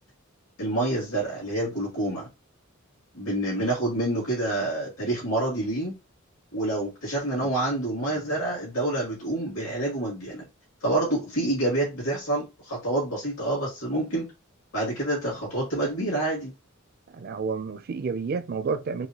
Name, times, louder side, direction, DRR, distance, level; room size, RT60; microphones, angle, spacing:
voice 1, 0.6-2.3 3.1-5.9 6.5-10.4 10.8-14.3 14.7-16.5, right 1 dB, 80° left, 2.3 m, -27 dB
voice 2, 17.1-19.1, right 5 dB, 45° right, 0.4 m, -30 dB
4.7 x 2.2 x 2.9 m
head